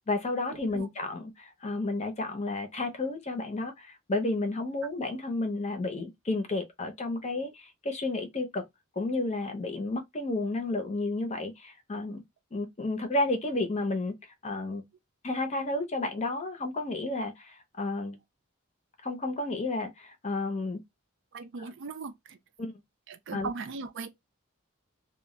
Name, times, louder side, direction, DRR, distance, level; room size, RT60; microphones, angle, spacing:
voice 1, 0.0-8.6 9.0-12.2 12.5-14.1 14.4-14.9 15.2-18.2 19.0-20.8 21.6-21.7 22.6-22.8 23.3-23.5, left 2 dB, 30° left, 0.6 m, -32 dB
voice 2, 21.3-22.4 23.1-24.3, right 4 dB, 60° right, 0.4 m, -39 dB
2.2 x 2.1 x 3.6 m
head